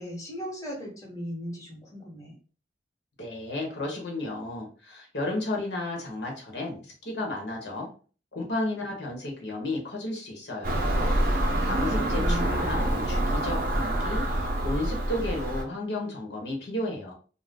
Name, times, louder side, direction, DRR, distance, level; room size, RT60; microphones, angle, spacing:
voice 1, 0.0-2.3 11.5-12.8, equal, 20° left, -3 dB, 1.0 m, -37 dB
voice 2, 3.2-7.9 8.3-10.9 11.6-17.1, left 2 dB, 75° left, 0 dB, 1.0 m, -33 dB
Car passing by / Engine, 10.6-15.6, right 1 dB, 50° right, 0.7 m, -26 dB
2.5 x 2.2 x 3.5 m, 0.38 s
head